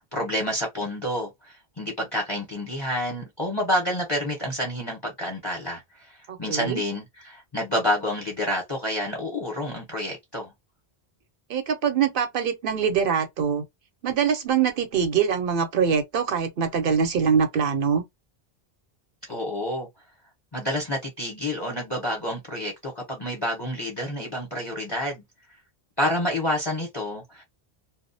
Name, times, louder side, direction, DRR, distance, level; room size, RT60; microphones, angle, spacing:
voice 1, 0.1-10.5 19.3-19.9 20.5-25.2 26.0-27.4, left 1 dB, 25° left, 0.8 m, -29 dB
voice 2, 6.3-6.8 11.5-13.6 14.0-18.0, right 7 dB, 65° right, 0.7 m, -23 dB
2.3 x 2.0 x 2.6 m
omnidirectional pair, 1.0 m